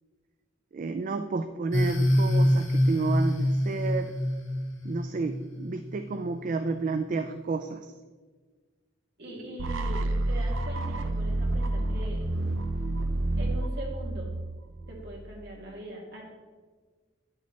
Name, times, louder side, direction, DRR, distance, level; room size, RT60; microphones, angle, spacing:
voice 1, 0.7-4.1 4.8-7.8, right 4 dB, 40° right, 8 dB, 0.3 m, -31 dB
sound 1, 1.7-6.3, left 1 dB, 85° left, 1.4 m, -26 dB
voice 2, 9.2-12.3 13.3-14.3 14.9-16.3, right 1 dB, 60° right, -2 dB, 1.9 m, -41 dB
sound 2, 9.6-15.5, right 1 dB, 90° right, 0.6 m, -29 dB
9.7 x 6.5 x 3.2 m, 1.4 s
head